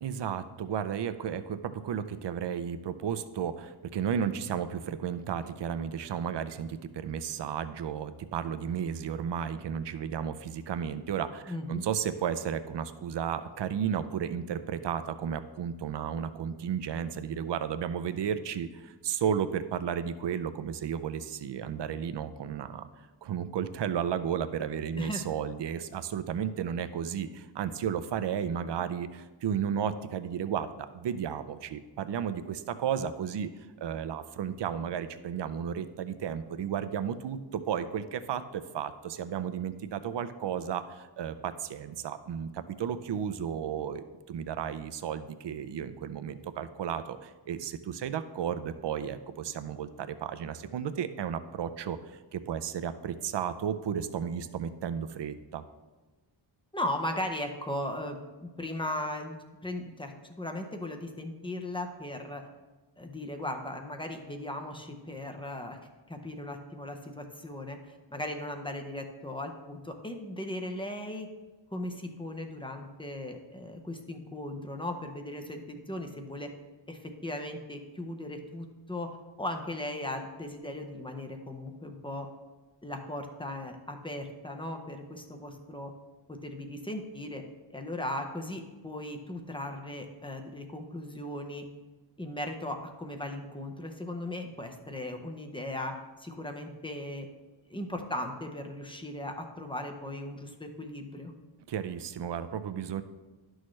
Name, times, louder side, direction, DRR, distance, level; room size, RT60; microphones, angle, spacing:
voice 1, 0.0-22.9 23.2-33.5 33.8-52.0 52.3-55.6 101.7-103.0, right 8 dB, 65° right, 11 dB, 0.6 m, -33 dB
voice 2, 11.5-11.8 25.0-25.2 56.7-59.4 59.6-62.4 63.0-65.8 66.1-71.3 71.7-76.5 76.9-82.3 82.8-85.9 86.3-87.4 87.7-91.7 92.2-97.3 97.7-101.3, left 1 dB, 10° left, 4 dB, 0.6 m, -37 dB
11.0 x 6.3 x 3.2 m, 1.3 s
wide cardioid pair, 180°, 46 cm